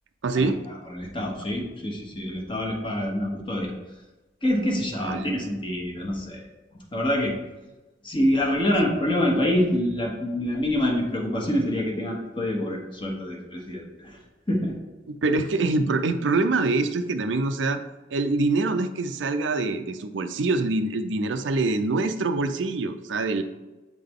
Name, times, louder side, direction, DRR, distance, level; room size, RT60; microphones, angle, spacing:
voice 1, 0.2-0.6 5.0-5.3 15.1-17.8 18.1-23.4, right 3 dB, 85° right, 8 dB, 0.5 m, -25 dB
voice 2, 0.9-3.7 4.4-6.5 6.9-7.3 8.0-14.2 14.5-14.8, left 1 dB, 30° left, 0 dB, 1.1 m, -26 dB
7.7 x 3.8 x 3.6 m, 1.1 s
head